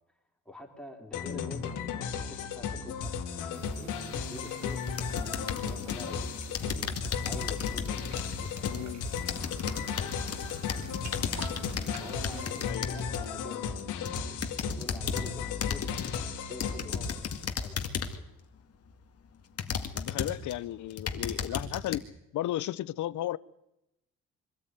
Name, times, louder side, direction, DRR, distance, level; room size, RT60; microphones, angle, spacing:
voice 1, 0.4-4.9 5.6-7.0 7.2-10.7 12.0-14.4 14.8-18.2, left 1 dB, 5° left, 4.2 m, -48 dB
sound 1, 1.1-17.4, left 6 dB, 90° left, 2.4 m, -35 dB
sound 2, 3.5-12.7, right 5 dB, 60° right, 3.1 m, -49 dB
sound 3, 4.9-6.1 6.5-13.3 13.8-15.3 15.6-16.2 16.6-18.3 18.9-19.0 19.6-20.5 20.9-22.0, left 6 dB, 50° left, 2.1 m, -35 dB
voice 2, 8.7-9.0 12.6-12.9 19.9-22.0 22.3-23.4, left 14 dB, 75° left, 0.7 m, -34 dB
24.0 x 14.0 x 9.5 m
cardioid pair, 90°, 30 cm